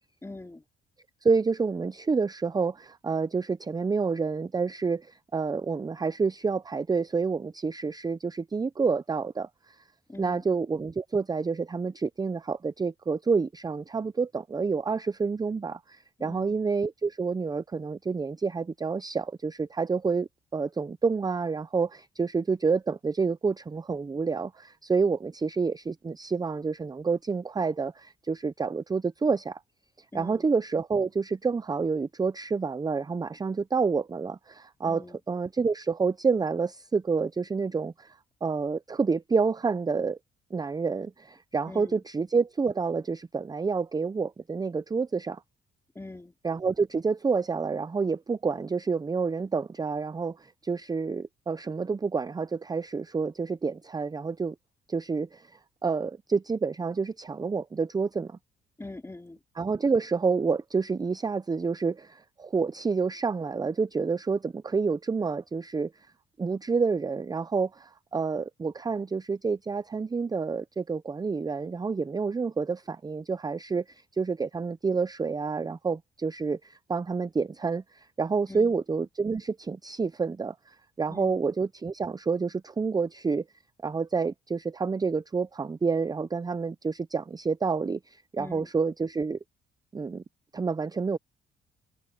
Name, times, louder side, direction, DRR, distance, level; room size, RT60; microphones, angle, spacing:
voice 1, 0.2-0.6 10.1-10.4 16.2-16.6 30.1-30.5 34.8-35.2 41.7-42.0 45.9-46.3 58.8-59.4 78.5-78.8 81.1-81.4 88.4-88.7, left 2 dB, 15° left, 3.4 m, -43 dB
voice 2, 1.2-9.8 10.2-29.6 30.1-40.2 40.5-45.4 46.4-54.5 54.9-58.4 59.6-66.1 66.4-83.4 83.8-89.4 89.9-90.2 90.5-91.2, right 4 dB, 20° right, 0.5 m, -28 dB
cardioid pair, 90°, 20 cm